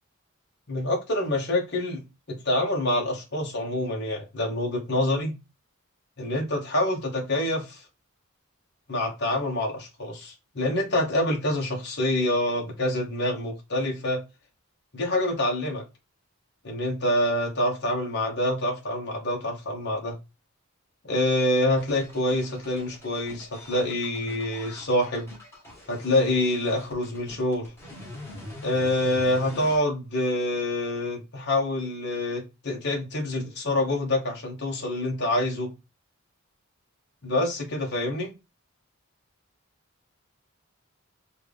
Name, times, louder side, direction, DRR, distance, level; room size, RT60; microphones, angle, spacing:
voice 1, 0.7-2.0 2.4-5.4 6.2-7.8 8.9-14.2 14.9-15.8 16.6-20.2 21.0-25.3 25.9-27.7 28.6-35.7 37.2-38.3, left 1 dB, 50° left, 1.2 m, -26 dB
sound 1, 21.8-29.8, left 1 dB, 10° left, 1.6 m, -44 dB
4.3 x 2.6 x 3.4 m
head